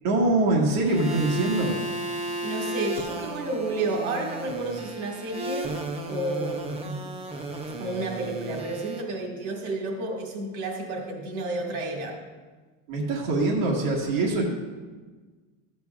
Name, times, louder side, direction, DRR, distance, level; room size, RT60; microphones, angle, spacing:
voice 1, 0.0-1.7 12.9-14.4, right 2 dB, 50° right, -3 dB, 1.6 m, -23 dB
sound 1, 0.9-9.0, right 1 dB, 15° right, 0.4 m, -34 dB
voice 2, 2.4-5.7 6.1-7.2 7.8-12.2, right 2 dB, 80° right, 0 dB, 2.0 m, -31 dB
14.0 x 8.1 x 2.4 m, 1.4 s
cardioid pair, 155°, 42 cm